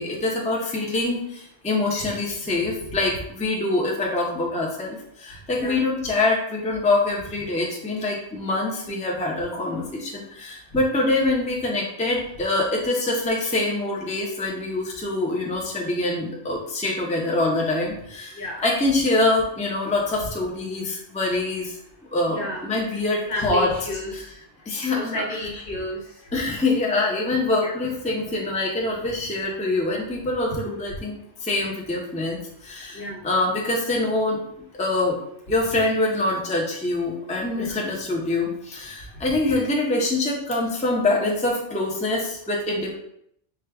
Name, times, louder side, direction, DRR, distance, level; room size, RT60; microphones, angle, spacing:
voice 1, 0.0-21.8 22.1-23.7 24.1-24.2 24.7-25.2 26.3-34.4 34.7-35.2 35.5-42.9, left 2 dB, 10° left, -2 dB, 0.5 m, -25 dB
voice 2, 22.3-22.8 23.3-24.2 24.9-26.0 27.6-27.7 30.5-30.6 32.9-33.2 37.5-37.8, left 1 dB, 55° left, -1 dB, 0.9 m, -31 dB
4.9 x 2.3 x 3.4 m, 0.71 s
omnidirectional pair, 1.2 m